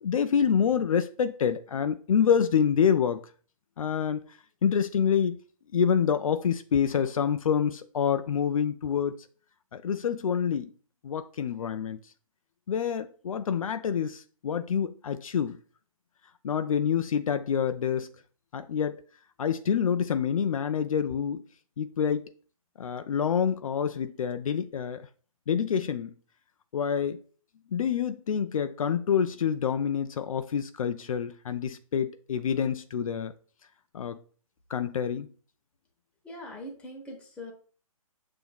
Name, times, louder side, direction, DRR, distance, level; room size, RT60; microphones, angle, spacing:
voice 1, 0.0-3.2 3.8-4.2 4.6-5.4 5.7-9.1 9.7-10.7 11.0-12.0 12.7-15.6 16.4-18.1 18.5-19.0 19.4-21.4 21.8-22.3 22.8-25.0 25.5-26.1 26.7-27.2 27.7-33.3 33.9-34.2 34.7-35.3, left 7 dB, 65° left, 0.4 m, -27 dB
voice 2, 36.2-37.5, left 1 dB, 5° left, 0.8 m, -42 dB
7.0 x 2.7 x 2.3 m
figure-of-eight pair, 140°, 19 cm